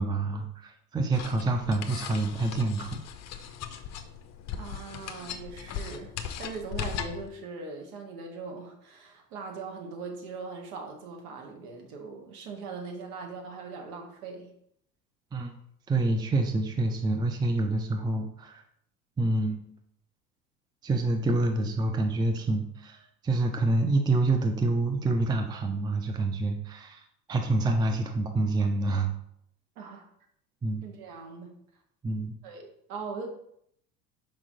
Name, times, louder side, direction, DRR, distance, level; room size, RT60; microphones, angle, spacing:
voice 1, 0.0-3.0 15.3-15.5 15.9-18.6 19.2-19.7 20.8-27.0 27.3-29.1 30.6-30.8 32.0-32.3, right 2 dB, 10° right, 5 dB, 0.6 m, -27 dB
sound 1, 1.1-7.3, left 8 dB, 35° left, 0.7 m, -38 dB
voice 2, 4.6-6.1 6.4-14.5 29.7-30.0 30.8-31.6 32.4-33.3, right 4 dB, 60° right, 2 dB, 1.7 m, -40 dB
6.0 x 5.1 x 4.1 m, 0.71 s
figure-of-eight pair, 75°, 50 cm